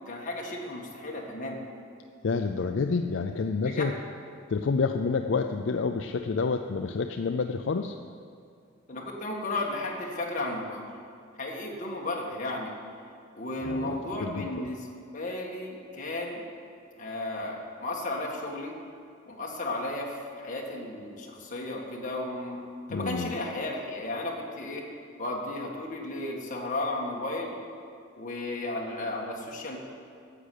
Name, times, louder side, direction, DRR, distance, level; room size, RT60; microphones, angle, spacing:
voice 1, 0.1-1.6 3.6-3.8 8.9-10.8 11.4-12.7 13.3-16.4 17.0-18.7 19.3-22.6 22.9-24.9 25.2-27.6 28.2-29.8, left 2 dB, 40° left, -2 dB, 1.8 m, -34 dB
voice 2, 2.2-4.0 4.5-8.0 13.6-14.7 22.9-23.3, left 4 dB, 65° left, 6 dB, 0.4 m, -29 dB
10.0 x 7.7 x 8.4 m, 2.4 s
head